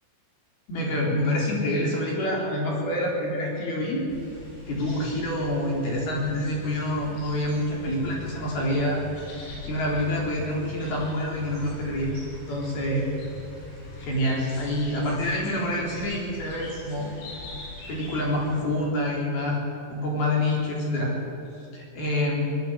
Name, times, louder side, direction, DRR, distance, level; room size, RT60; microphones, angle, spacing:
voice 1, 0.7-4.0 4.7-9.0 9.6-12.1 12.5-13.1 13.9-17.1 17.9-19.6 19.9-21.1 21.7-22.6, left 1 dB, 55° left, -2 dB, 5.7 m, -27 dB
sound 1, 4.1-18.6, left 2 dB, 85° left, 9.9 m, -42 dB
23.5 x 20.5 x 8.2 m, 2.7 s
omnidirectional pair, 5.5 m